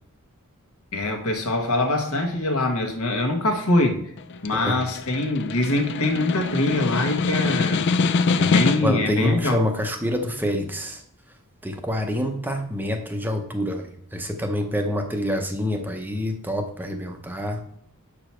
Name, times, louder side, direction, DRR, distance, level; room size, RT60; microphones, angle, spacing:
voice 1, 0.9-4.0 4.4-7.8 8.4-9.6, left 2 dB, 70° left, 4 dB, 1.3 m, -23 dB
Snare drum, 4.2-9.1, left 4 dB, 55° left, 0.4 m, -24 dB
voice 2, 8.8-11.0 11.6-17.6, left 1 dB, 10° right, 4 dB, 0.6 m, -26 dB
7.3 x 4.9 x 4.4 m, 0.69 s
head